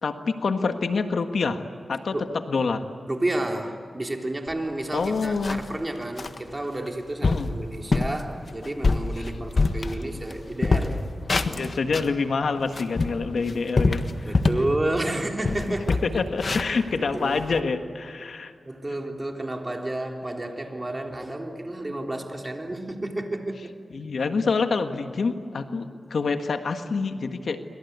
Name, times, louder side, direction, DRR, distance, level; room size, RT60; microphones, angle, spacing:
voice 1, 0.0-1.6 1.9-2.8 4.9-5.6 7.2-7.5 9.2-9.3 11.4-14.4 16.0-18.5 23.9-27.7, left 4 dB, 80° left, 7 dB, 1.6 m, -27 dB
voice 2, 3.1-11.0 11.5-11.6 14.3-16.0 16.9-17.4 18.7-23.7, right 1 dB, 25° right, 2 dB, 3.6 m, -31 dB
sound 1, 4.5-4.6 5.0-5.7 6.2-6.4 6.9-7.0 7.2-7.5 7.9-8.2 8.6-10.3 10.6-12.1 12.6-14.7 15.1-15.2 15.4-17.6, left 3 dB, 55° left, 1.5 m, -25 dB
28.0 x 24.5 x 8.2 m, 2.4 s
cardioid pair, 60°, 0 cm